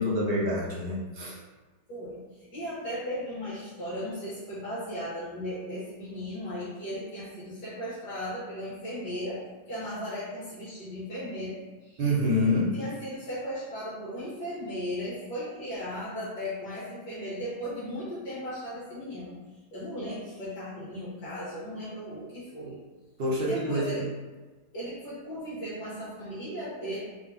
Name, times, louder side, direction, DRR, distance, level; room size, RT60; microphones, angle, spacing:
voice 1, 0.0-1.3 12.0-12.7 23.2-24.0, left 1 dB, 80° right, -5 dB, 0.5 m, -26 dB
voice 2, 1.9-9.4 9.7-12.0 12.7-19.3 19.7-22.8 23.3-24.1 24.7-27.0, equal, 75° left, -10 dB, 1.7 m, -36 dB
3.6 x 3.2 x 2.6 m, 1.3 s
omnidirectional pair, 1.9 m